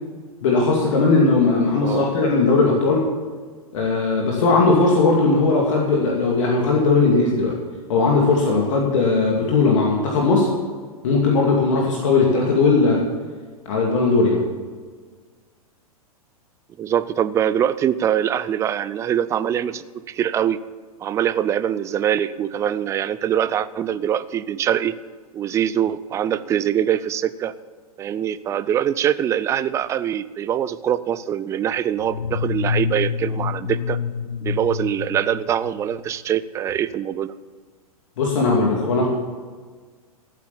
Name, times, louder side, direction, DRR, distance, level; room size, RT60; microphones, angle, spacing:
voice 1, 0.4-3.1 3.7-7.5 7.9-10.5 11.0-13.0 13.7-14.4 38.2-39.1, left 3 dB, 55° left, -1 dB, 2.3 m, -18 dB
voice 2, 16.8-20.6 21.0-25.0 25.3-27.5 28.0-34.0 34.4-37.3, right 10 dB, 15° right, 16 dB, 0.4 m, -23 dB
sound 1, 32.0-36.1, left 6 dB, 75° left, 0.7 m, -27 dB
14.5 x 8.3 x 7.1 m, 1.5 s
figure-of-eight pair, 105°, 19 cm